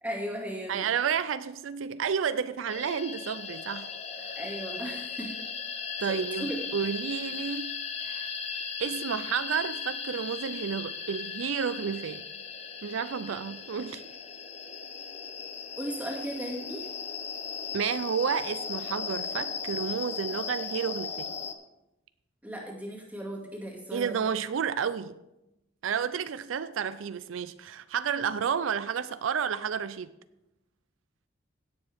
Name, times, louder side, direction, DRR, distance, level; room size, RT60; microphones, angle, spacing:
voice 1, 0.0-0.9 4.4-5.4 6.1-6.6 15.8-16.9 22.4-24.2, right 1 dB, 10° right, -2 dB, 2.2 m, -36 dB
voice 2, 0.7-3.9 4.2-4.4 6.0-8.3 8.8-12.2 12.8-14.0 17.7-21.3 23.9-25.2 25.8-30.1, right 7 dB, 80° right, 14 dB, 0.4 m, -31 dB
sound 1, 2.7-21.5, left 6 dB, 35° left, 0.8 m, -37 dB
17.0 x 7.1 x 3.5 m, 0.89 s
head